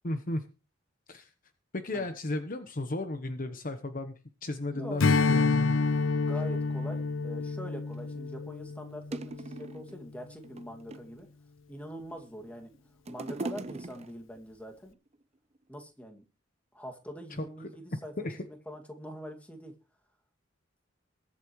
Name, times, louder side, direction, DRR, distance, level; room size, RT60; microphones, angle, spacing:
voice 1, 0.0-0.4 1.1-1.3 1.7-4.1 4.4-5.8 17.4-17.5 18.2-18.4, left 2 dB, 45° left, 8 dB, 1.1 m, -34 dB
voice 2, 4.8-5.1 6.2-11.3 11.7-12.7 13.1-14.9 15.7-16.2 16.7-18.1 18.4-19.7, equal, 10° left, 3 dB, 2.3 m, -43 dB
Strum, 5.0-9.8, left 4 dB, 90° left, 0.6 m, -28 dB
sound 1, 7.9-8.0 8.7-8.8 9.1-10.0 10.4-11.2 11.9-12.5 12.7-14.4 15.1-15.2, right 2 dB, 35° right, 0.8 m, -40 dB
21.5 x 8.4 x 3.2 m, 0.31 s
head